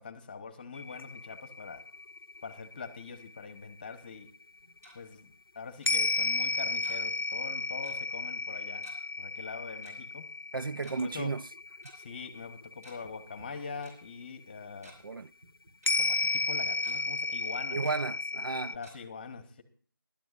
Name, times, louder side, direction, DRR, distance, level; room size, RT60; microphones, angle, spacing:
voice 1, 0.0-1.8 2.4-4.3 4.9-8.9 9.2-10.2 10.8-11.3 11.9-14.9 16.0-17.8 18.7-19.6, left 5 dB, 25° left, 1.1 m, -43 dB
sound 1, 0.7-4.4 5.9-14.0 14.3-14.4 15.9-18.8, left 3 dB, 90° left, 0.5 m, -33 dB
Tick-tock, 4.5-4.9 5.8-5.9 6.8-7.2 7.4-7.5 7.8-8.0 8.8-9.0 9.8-9.9 10.7-11.0 11.8-11.9 12.7-13.1 13.4-13.5 13.8-13.9 14.5-14.9 15.4-15.9 16.4-16.5 16.8-17.0 17.8-17.9 18.8-18.9, right 1 dB, 45° right, 5.5 m, -53 dB
voice 2, 10.5-11.4 15.0-15.3 17.7-18.8, right 4 dB, 70° right, 0.5 m, -33 dB
20.5 x 12.0 x 2.5 m
figure-of-eight pair, 165°, 12 cm